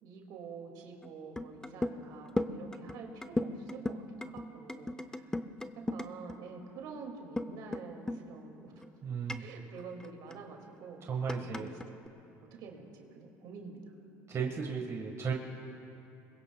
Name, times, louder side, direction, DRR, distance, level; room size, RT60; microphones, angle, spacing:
voice 1, 0.0-5.3 5.9-8.7 9.4-11.7 12.5-13.8, right 5 dB, 70° right, 1 dB, 2.3 m, -47 dB
sound 1, 1.0-1.1 1.4-2.0 2.3-6.4 7.4-7.8 8.1-8.2 8.8-8.9 9.3-10.4 11.3-12.1, left 1 dB, 10° left, 0.7 m, -36 dB
voice 2, 9.0-9.4 11.0-11.7 14.3-15.3, right 6 dB, 40° right, 1 dB, 1.6 m, -35 dB
25.5 x 21.5 x 2.3 m, 2.9 s
supercardioid pair, 90°, 7 cm